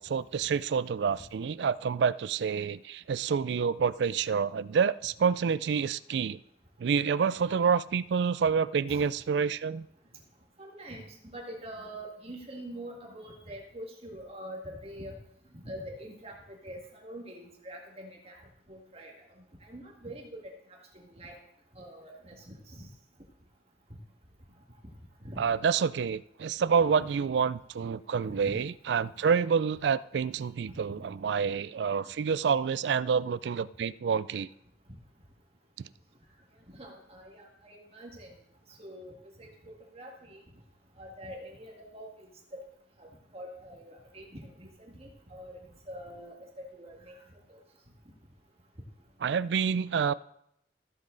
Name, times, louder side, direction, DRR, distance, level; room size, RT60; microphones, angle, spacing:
voice 1, 0.0-6.4 6.8-9.9 25.4-34.5 49.2-50.1, right 6 dB, 65° right, 18 dB, 0.3 m, -28 dB
voice 2, 10.6-15.2 15.6-18.4 18.7-19.1 19.6-20.5 20.9-21.4 21.8-22.9 25.2-25.4 27.0-27.1 28.2-28.3 31.0-31.1 36.7-38.3 38.8-39.1 39.4-40.4 41.0-42.1 42.5-42.6 43.0-43.1 43.3-45.6 45.9-47.1 47.5-47.6, right 1 dB, 35° right, 0 dB, 1.9 m, -45 dB
14.5 x 7.5 x 3.9 m, 0.74 s
head